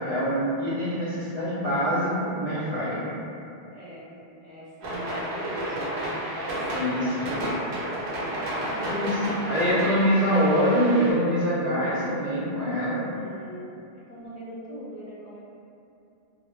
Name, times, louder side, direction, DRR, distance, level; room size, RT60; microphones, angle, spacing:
voice 1, 0.0-3.1 6.7-7.3 8.9-13.0, equal, 50° right, -11 dB, 0.6 m, -24 dB
voice 2, 3.7-7.7 8.0-8.9 13.1-13.7 13.9-15.4, equal, 55° left, -11 dB, 0.5 m, -41 dB
sound 1, 4.8-11.1, right 1 dB, 80° right, 0.9 m, -31 dB
2.2 x 2.0 x 3.0 m, 2.6 s
omnidirectional pair, 1.1 m